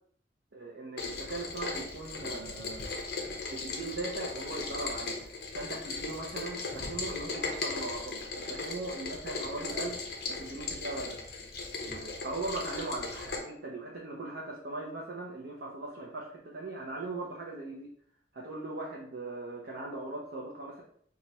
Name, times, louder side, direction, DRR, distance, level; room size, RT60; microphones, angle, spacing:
voice 1, 0.5-2.9 3.5-10.0 10.3-11.2 11.8-17.9 18.3-20.8, right 2 dB, 75° right, -3 dB, 0.7 m, -39 dB
Rain, 1.0-13.4, left 3 dB, 60° left, 0.7 m, -37 dB
3.0 x 2.4 x 4.1 m, 0.63 s
head